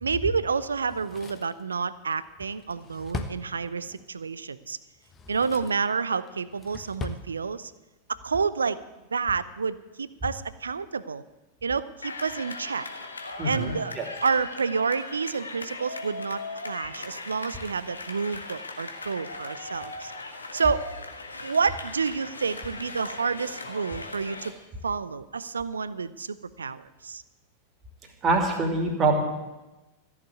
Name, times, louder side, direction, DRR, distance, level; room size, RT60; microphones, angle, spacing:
voice 1, 0.0-4.8 5.3-7.7 8.1-8.8 9.1-11.2 11.6-12.9 13.4-13.9 14.2-20.1 20.5-20.8 21.4-24.5 24.8-27.2, right 5 dB, 75° right, 17 dB, 0.5 m, -29 dB
Drawer open or close, 0.8-4.1 4.9-5.9 6.3-7.3 7.6-7.7, left 4 dB, 20° left, 1.2 m, -40 dB
sound 1, 12.0-24.5, left 3 dB, 80° left, 1.6 m, -39 dB
voice 2, 13.4-14.1 28.2-29.2, right 3 dB, 25° right, 3 dB, 2.8 m, -24 dB
14.5 x 7.3 x 9.2 m, 1.1 s
figure-of-eight pair, 90°, 0 cm